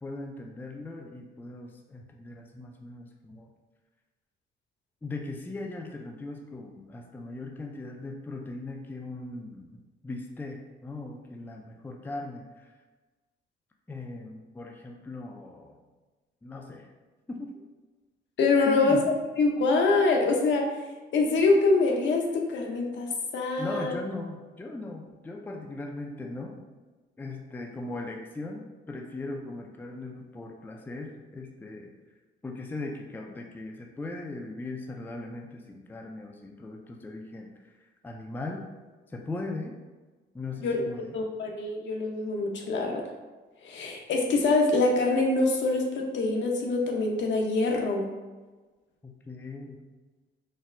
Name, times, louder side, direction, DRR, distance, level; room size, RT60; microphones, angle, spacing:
voice 1, 0.0-3.5 5.0-12.7 13.9-15.8 16.4-16.9 17.3-17.6 18.7-19.0 23.6-26.6 27.2-31.9 32.4-38.6 39.1-39.7 40.3-41.2 49.0-49.8, left 2 dB, 10° left, 1 dB, 0.3 m, -39 dB
voice 2, 18.4-20.6 21.1-23.9 40.6-40.8 41.1-43.0 43.6-48.1, left 3 dB, 65° left, 0 dB, 0.6 m, -25 dB
4.1 x 2.0 x 2.5 m, 1.3 s
cardioid pair, 90°, 20 cm